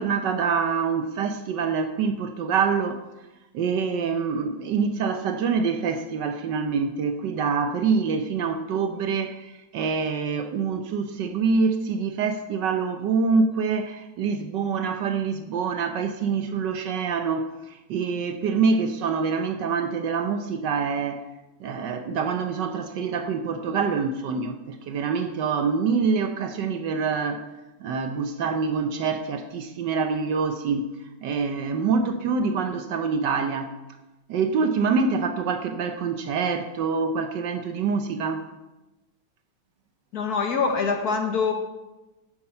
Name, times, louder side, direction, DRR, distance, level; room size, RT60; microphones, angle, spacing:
voice 1, 0.0-3.0 3.5-21.3 21.6-27.5 27.8-30.9 31.2-33.7 34.3-38.4, right 5 dB, 70° right, 1.2 m, -25 dB
voice 2, 40.1-41.5, left 5 dB, 55° left, 1.2 m, -24 dB
11.5 x 9.4 x 4.3 m
omnidirectional pair, 2.2 m